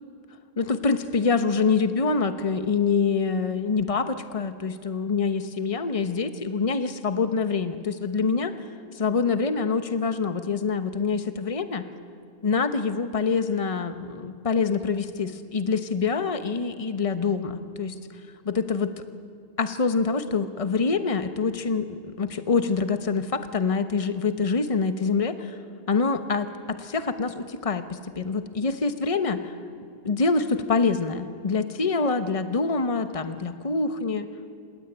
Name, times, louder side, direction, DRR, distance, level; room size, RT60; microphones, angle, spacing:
voice 1, 0.6-8.5 8.9-11.8 12.4-17.9 18.4-18.9 19.6-25.6 25.9-29.6 30.0-34.3, left 4 dB, 35° left, 9 dB, 1.1 m, -25 dB
28.5 x 16.5 x 9.2 m, 2.5 s
omnidirectional pair, 1.0 m